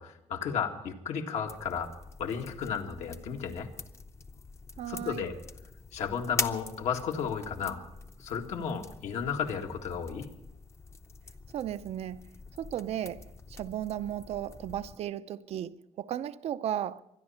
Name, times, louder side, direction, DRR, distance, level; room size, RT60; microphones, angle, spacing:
voice 1, 0.0-1.9 2.2-3.7 4.9-5.3 5.9-7.8 8.2-10.3, left 7 dB, 80° left, 2.0 m, -33 dB
sound 1, 1.5-15.0, left 4 dB, 25° left, 0.7 m, -43 dB
voice 2, 4.8-5.3 11.5-17.0, right 11 dB, 65° right, 0.5 m, -35 dB
24.0 x 10.5 x 5.7 m
cardioid pair, 155°, 12 cm